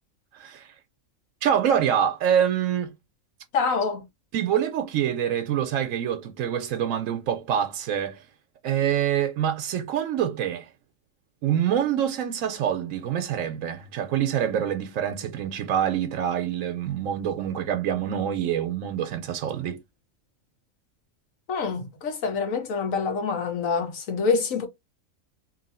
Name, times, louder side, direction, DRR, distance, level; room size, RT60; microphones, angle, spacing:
voice 1, 0.3-0.8 1.4-2.9 4.3-8.2 8.6-10.7 11.4-19.8, right 9 dB, 75° right, 1.0 m, -26 dB
voice 2, 3.5-4.0 21.5-24.7, left 5 dB, 80° left, 1.4 m, -26 dB
3.0 x 2.8 x 4.1 m
omnidirectional pair, 1.4 m